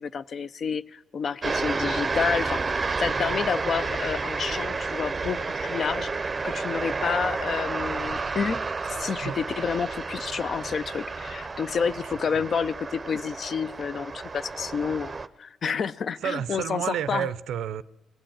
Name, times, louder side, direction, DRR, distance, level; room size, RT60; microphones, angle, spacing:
voice 1, 0.0-6.1 6.4-8.6 8.8-15.1 15.4-16.8 17.1-17.3, left 6 dB, 50° left, 0.4 m, -29 dB
sound 1, 1.4-15.3, right 4 dB, 30° right, 0.6 m, -31 dB
voice 2, 16.2-17.8, right 9 dB, 75° right, 0.4 m, -30 dB
19.5 x 7.7 x 8.6 m
cardioid pair, 90°, 0 cm